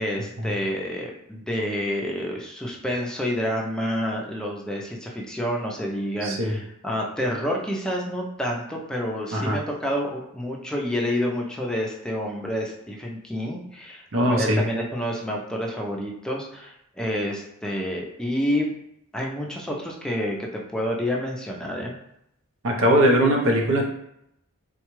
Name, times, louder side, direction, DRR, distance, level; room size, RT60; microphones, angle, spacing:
voice 1, 0.0-18.7 19.1-21.9, equal, 5° left, -1 dB, 0.5 m, -28 dB
voice 2, 6.2-6.6 9.3-9.6 14.1-14.6 22.6-23.9, right 1 dB, 60° right, 1 dB, 0.6 m, -20 dB
3.8 x 2.3 x 3.0 m, 0.78 s
head